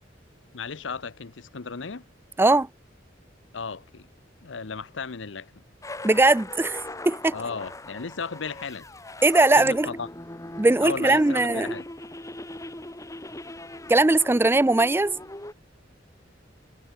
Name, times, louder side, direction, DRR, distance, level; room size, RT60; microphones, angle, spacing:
voice 1, 0.5-2.0 3.5-4.1 4.4-5.6 7.3-8.9 9.6-10.1 10.8-11.8, left 5 dB, 90° left, 0.9 m, -35 dB
sound 1, 5.8-15.5, left 1 dB, 15° left, 1.9 m, -39 dB
voice 2, 6.0-7.4 9.2-9.9 10.6-11.8 13.9-15.2, right 2 dB, 10° right, 0.4 m, -20 dB
head